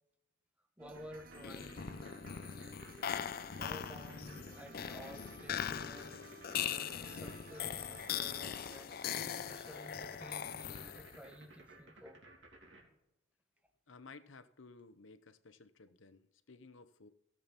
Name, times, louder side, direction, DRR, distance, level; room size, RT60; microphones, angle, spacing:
voice 1, 0.8-2.2 3.6-6.1 6.6-12.2, equal, 5° right, 1.2 m, -53 dB
sound 1, 0.8-8.5, right 3 dB, 45° right, 0.6 m, -57 dB
sound 2, 0.9-12.8, right 2 dB, 70° right, 3.0 m, -57 dB
sound 3, 1.4-11.3, left 8 dB, 50° left, 0.5 m, -41 dB
voice 2, 13.9-17.1, left 4 dB, 85° left, 0.8 m, -56 dB
16.0 x 7.7 x 4.2 m
head